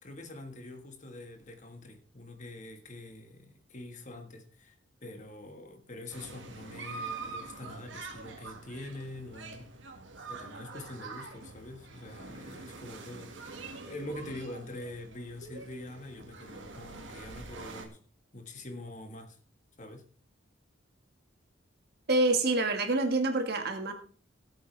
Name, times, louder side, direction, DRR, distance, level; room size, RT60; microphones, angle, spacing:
voice 1, 0.0-4.7 5.0-9.7 10.3-18.0 18.3-19.4 19.8-20.1, left 1 dB, 40° left, 1.6 m, -45 dB
sound 1, 6.1-17.9, right 3 dB, 75° right, 1.9 m, -45 dB
voice 2, 22.1-23.9, right 2 dB, 55° right, 1.8 m, -27 dB
17.5 x 8.1 x 3.4 m
head